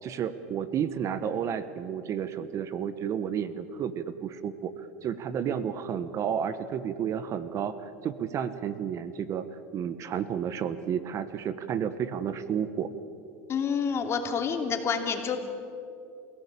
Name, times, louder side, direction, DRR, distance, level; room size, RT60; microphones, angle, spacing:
voice 1, 0.0-4.7 5.0-7.8 8.0-9.4 9.7-12.9, right 8 dB, 40° right, 13 dB, 1.2 m, -31 dB
voice 2, 13.5-15.4, left 6 dB, 35° left, 5 dB, 3.0 m, -28 dB
29.5 x 16.5 x 8.5 m, 2.6 s
supercardioid pair, 115°, 8 cm